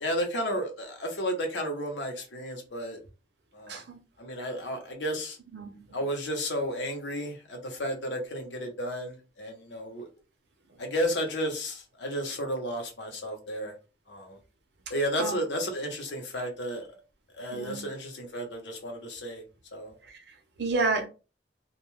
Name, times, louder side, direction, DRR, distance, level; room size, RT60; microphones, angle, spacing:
voice 1, 0.0-3.0 3.5-3.8 4.2-5.4 5.9-10.1 10.8-13.7 14.1-14.4 14.9-16.9 17.4-19.4 19.7-19.9 20.7-20.8, equal, 85° left, 0.9 m, -32 dB
voice 2, 3.7-4.0 5.5-5.9 15.2-15.3 17.5-17.9 20.0-21.1, right 3 dB, 70° right, 0.7 m, -31 dB
2.4 x 2.2 x 3.1 m
head